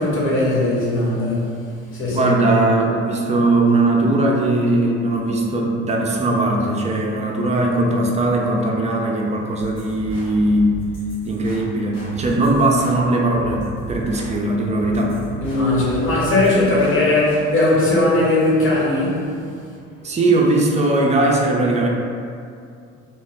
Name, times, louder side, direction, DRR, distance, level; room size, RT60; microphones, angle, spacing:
voice 1, 0.0-1.5 1.9-2.3 15.4-19.1, left 2 dB, 35° left, -5 dB, 0.9 m, -18 dB
voice 2, 2.1-10.8 11.2-15.2 20.0-21.9, right 2 dB, 20° right, -1 dB, 0.4 m, -19 dB
sound 1, 9.6-17.4, equal, 80° left, 0.9 m, -36 dB
2.7 x 2.1 x 3.3 m, 2.4 s
figure-of-eight pair, 55°, 37 cm